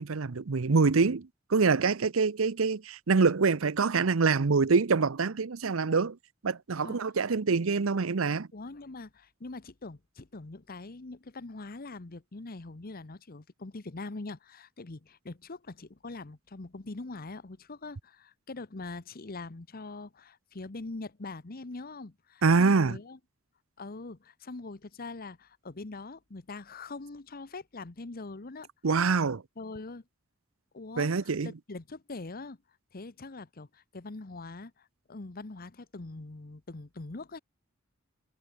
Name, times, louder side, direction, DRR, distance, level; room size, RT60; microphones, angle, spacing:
voice 1, 0.0-6.2 6.4-8.5 22.4-23.0 28.8-29.4 31.0-31.5, right 4 dB, 85° right, 0.7 m, -25 dB
voice 2, 8.5-23.2 23.8-28.7 29.6-30.0 30.7-32.6 32.9-37.4, left 3 dB, 45° left, 1.0 m, -43 dB
head